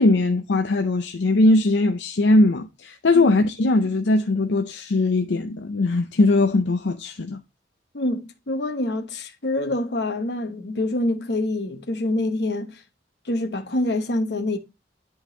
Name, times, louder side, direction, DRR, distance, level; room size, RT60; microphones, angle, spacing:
voice 1, 0.0-7.4, left 2 dB, 85° left, 0.6 m, -20 dB
voice 2, 7.9-12.8 13.2-14.6, left 1 dB, 70° left, 1.1 m, -26 dB
11.0 x 3.9 x 3.9 m
head